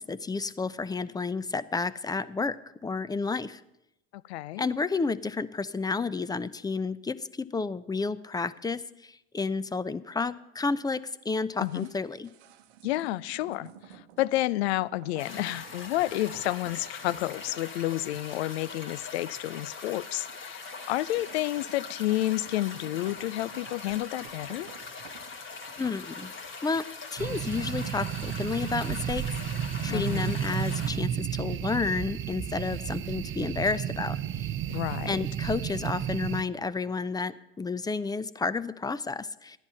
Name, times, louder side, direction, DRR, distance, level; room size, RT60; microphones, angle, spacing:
voice 1, 0.0-3.6 4.6-12.3 25.8-26.3 26.6-26.8 27.1-29.2 29.8-34.5 35.1-39.6, left 4 dB, 10° left, 16 dB, 0.5 m, -31 dB
voice 2, 4.1-4.7 11.6-11.9 12.8-24.7 29.9-30.3 34.7-35.1, left 16 dB, 80° left, 21 dB, 0.5 m, -30 dB
sound 1, 11.5-28.8 29.1-29.2, right 9 dB, 80° right, 0.9 m, -52 dB
sound 2, 15.2-30.9, left 4 dB, 40° left, 2.0 m, -42 dB
sound 3, 27.2-36.4, right 10 dB, 40° right, 0.7 m, -32 dB
13.5 x 10.5 x 5.7 m, 0.87 s
hypercardioid pair, 85°, 32 cm